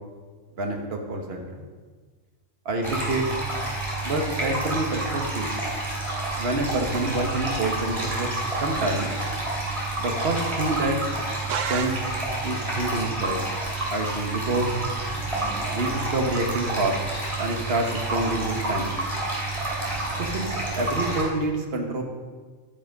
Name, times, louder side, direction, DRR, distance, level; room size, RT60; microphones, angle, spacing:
voice 1, 0.6-1.6 2.6-3.2 4.0-5.6 6.4-8.3 8.6-9.2 10.0-11.0 11.7-12.0 12.4-13.5 13.9-14.8 15.7-17.0 17.4-18.9 20.2-22.0, right 2 dB, 50° right, 2 dB, 1.6 m, -27 dB
sound 1, 2.8-21.2, right 2 dB, 25° right, 3.3 m, -29 dB
sound 2, 11.5-12.6, right 7 dB, 80° right, 1.1 m, -31 dB
12.5 x 9.0 x 5.3 m, 1.4 s
omnidirectional pair, 1.3 m